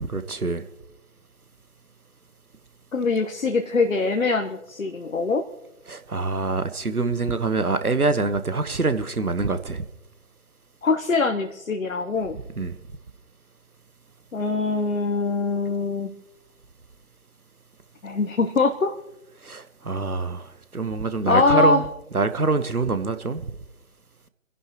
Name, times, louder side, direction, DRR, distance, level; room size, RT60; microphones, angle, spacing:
voice 1, 0.0-0.6 5.9-9.8 12.6-12.8 19.4-21.8 22.1-23.4, right 3 dB, 90° right, 1.2 m, -25 dB
voice 2, 2.9-5.4 10.8-12.4 14.3-16.1 18.0-19.0 21.3-21.8, left 3 dB, 65° left, 1.2 m, -23 dB
29.5 x 11.0 x 3.1 m
figure-of-eight pair, 145°, 43 cm